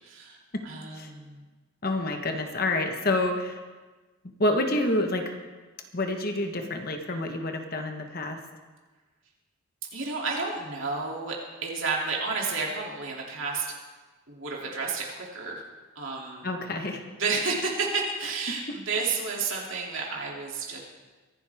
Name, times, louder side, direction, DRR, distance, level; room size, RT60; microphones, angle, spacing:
voice 1, 0.0-1.4 9.9-13.6 14.3-15.6 15.9-16.5 17.1-20.8, right 4 dB, 60° right, -2 dB, 2.8 m, -31 dB
voice 2, 1.8-3.6 4.4-5.4 5.9-8.4 16.4-17.0, left 1 dB, 45° left, 4 dB, 1.2 m, -28 dB
23.5 x 11.5 x 3.5 m, 1.3 s
head